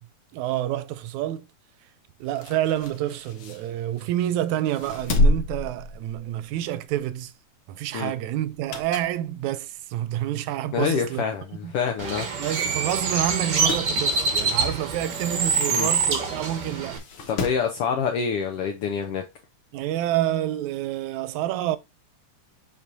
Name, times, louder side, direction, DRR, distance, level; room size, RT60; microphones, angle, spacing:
voice 1, 0.3-1.5 2.2-7.3 7.7-11.2 11.6-11.7 12.4-17.0 19.7-21.8, right 13 dB, 85° right, 1.9 m, -28 dB
sound 1, 2.2-4.2 4.7-6.5 6.9-7.1 8.4-9.2 9.7-9.8 10.7-10.8 11.0-11.1 11.3-11.4 12.3-12.4 12.8-12.9 13.2-13.9 15.8-15.9 16.9-17.7 19.0-19.1, left 2 dB, 60° left, 1.6 m, -28 dB
voice 2, 10.7-12.3 15.7-15.9 17.3-19.2, left 6 dB, 80° left, 1.3 m, -26 dB
Bird, 12.0-17.0, right 4 dB, 55° right, 1.3 m, -25 dB
7.4 x 4.8 x 2.7 m
omnidirectional pair, 3.4 m